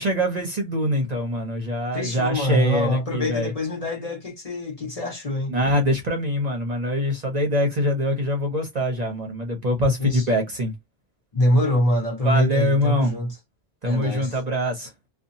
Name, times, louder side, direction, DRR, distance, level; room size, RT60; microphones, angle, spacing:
voice 1, 0.0-3.5 5.5-10.7 12.2-13.1 13.8-14.9, equal, 45° right, 0.7 m, -24 dB
voice 2, 1.9-5.6 9.9-10.3 11.3-13.4 13.8-14.3, left 1 dB, 40° left, 1.0 m, -24 dB
2.7 x 2.3 x 2.6 m
omnidirectional pair, 1.0 m